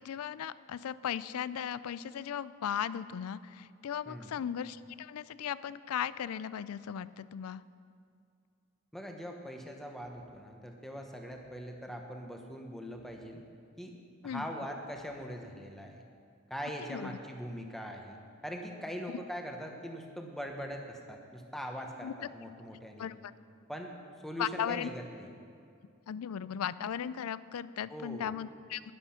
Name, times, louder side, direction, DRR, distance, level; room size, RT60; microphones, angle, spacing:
voice 1, 0.0-7.6 14.2-14.5 16.9-17.2 19.1-19.2 22.0-22.1 23.0-23.1 24.4-24.9 26.1-28.8, left 8 dB, 85° left, 17 dB, 0.4 m, -37 dB
voice 2, 4.1-4.4 8.9-13.4 13.8-13.9 14.2-16.0 16.5-18.2 18.4-23.1 23.7-23.9 24.2-25.3 27.9-28.3, equal, ahead, 2 dB, 1.0 m, -41 dB
12.0 x 10.5 x 5.7 m, 2.4 s
head